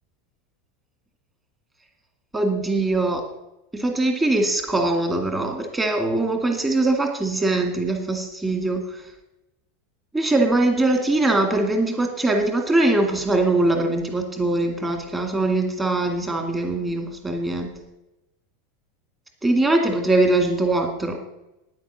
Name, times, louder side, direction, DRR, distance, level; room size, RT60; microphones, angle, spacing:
voice 1, 2.3-3.2 3.7-8.8 10.1-17.7 19.4-21.2, right 2 dB, 10° right, 5 dB, 2.2 m, -22 dB
9.7 x 9.5 x 8.1 m, 0.93 s
supercardioid pair, 150°, 0 cm